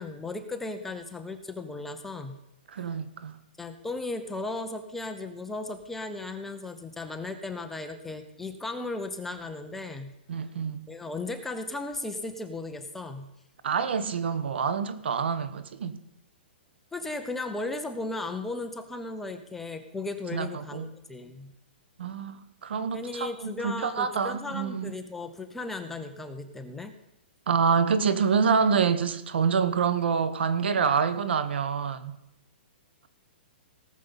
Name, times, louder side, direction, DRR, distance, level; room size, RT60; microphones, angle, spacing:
voice 1, 0.0-2.4 3.6-10.1 10.9-13.3 16.9-21.5 22.9-26.9, left 2 dB, 5° left, 0.6 m, -36 dB
voice 2, 2.7-3.4 10.3-10.9 13.6-16.0 20.3-20.9 22.0-25.0 27.5-32.2, right 6 dB, 70° right, 1.1 m, -27 dB
17.5 x 6.8 x 5.7 m
hypercardioid pair, 165°, 6 cm